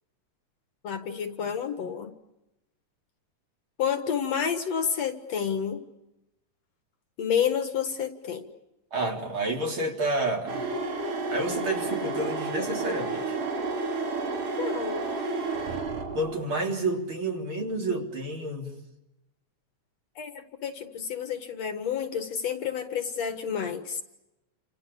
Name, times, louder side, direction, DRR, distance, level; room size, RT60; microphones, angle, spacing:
voice 1, 0.8-2.1 3.8-5.8 7.2-8.5 14.6-15.0 20.2-24.0, left 7 dB, 60° left, 8 dB, 2.7 m, -29 dB
voice 2, 8.9-10.6 11.3-13.4 16.1-18.8, right 2 dB, 40° right, 2 dB, 4.3 m, -30 dB
sound 1, 10.5-16.3, right 3 dB, 85° right, 5.1 m, -31 dB
28.5 x 27.5 x 7.0 m, 0.94 s
omnidirectional pair, 3.5 m